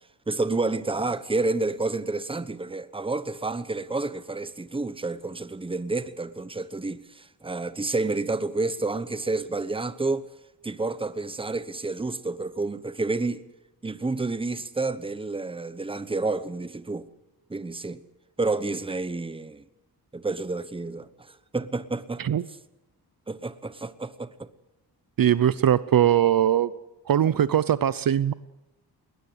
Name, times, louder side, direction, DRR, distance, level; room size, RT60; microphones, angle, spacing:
voice 1, 0.3-10.3 10.6-13.4 13.8-17.1 17.5-18.0 18.4-19.6 20.1-22.2 23.3-24.5, right 3 dB, 15° right, 1.0 m, -29 dB
voice 2, 25.2-26.7 27.1-28.3, right 10 dB, 60° right, 0.7 m, -21 dB
22.0 x 19.5 x 8.0 m
wide cardioid pair, 120°, 40 cm